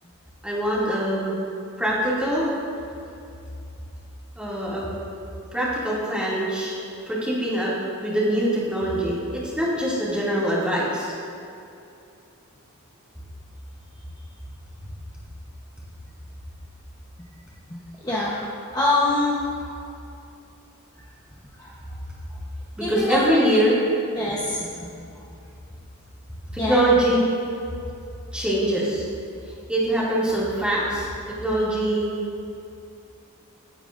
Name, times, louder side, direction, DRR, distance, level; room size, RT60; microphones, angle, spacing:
voice 1, 0.4-1.4 1.8-2.5 4.4-4.9 5.5-6.7 7.1-7.7 8.0-11.1 22.8-23.8 26.5-27.2 28.3-29.0 29.4-32.1, right 1 dB, 5° right, -8 dB, 2.4 m, -23 dB
voice 2, 18.0-18.5 18.7-19.7 22.8-23.2 24.2-24.6 26.6-26.8, left 2 dB, 15° left, -7 dB, 1.0 m, -24 dB
16.5 x 8.8 x 2.6 m, 2.7 s
head